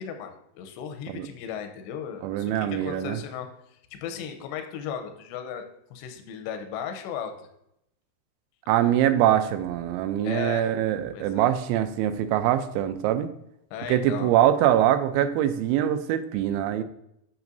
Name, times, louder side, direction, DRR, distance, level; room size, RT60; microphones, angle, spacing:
voice 1, 0.0-5.6 5.9-7.3 10.2-10.8 11.1-11.5 13.7-14.3, left 8 dB, 80° left, 6 dB, 2.8 m, -36 dB
voice 2, 2.2-3.2 8.7-13.3 13.9-16.8, right 11 dB, 85° right, 10 dB, 2.9 m, -23 dB
8.3 x 6.0 x 2.6 m, 0.79 s
omnidirectional pair, 5.4 m